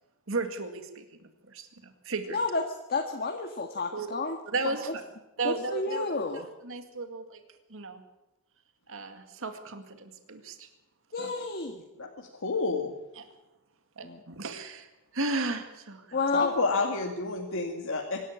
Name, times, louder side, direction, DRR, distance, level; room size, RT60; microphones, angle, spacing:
voice 1, 0.3-2.4 3.9-4.1 4.5-5.0 5.4-7.4 7.7-8.0 8.9-10.7 11.2-11.3 13.1-13.3 14.0-16.2, right 3 dB, 65° right, 6 dB, 2.1 m, -35 dB
voice 2, 2.3-2.6 2.9-4.4 5.4-6.5 11.1-11.8 14.0-14.2 16.1-16.6, left 3 dB, 45° left, 3 dB, 1.8 m, -30 dB
voice 3, 12.0-12.9 16.3-18.2, left 3 dB, 60° left, 1 dB, 2.2 m, -30 dB
25.0 x 12.5 x 8.7 m, 1.0 s
head